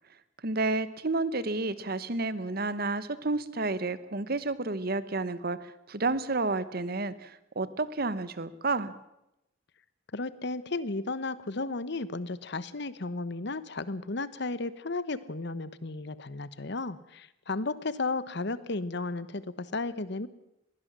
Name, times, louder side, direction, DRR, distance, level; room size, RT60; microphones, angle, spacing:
voice 1, 0.4-8.9, right 3 dB, 50° right, 15 dB, 1.1 m, -31 dB
voice 2, 10.1-20.3, left 3 dB, 60° left, 16 dB, 1.1 m, -34 dB
22.0 x 16.5 x 7.5 m, 0.87 s
head